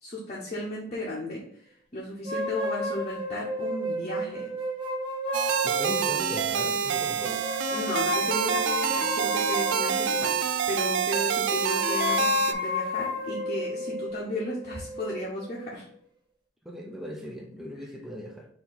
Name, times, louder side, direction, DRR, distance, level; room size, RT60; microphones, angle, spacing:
voice 1, 0.0-4.5 7.7-15.9, left 1 dB, 35° left, -5 dB, 0.9 m, -35 dB
sound 1, 2.2-6.4 7.2-10.6 11.4-15.8, left 3 dB, 25° right, 1.0 m, -32 dB
sound 2, 5.3-12.5, right 8 dB, 65° right, 0.3 m, -27 dB
voice 2, 5.6-7.5 16.6-18.5, equal, ahead, 0 dB, 0.5 m, -38 dB
4.5 x 2.7 x 3.9 m, 0.64 s
head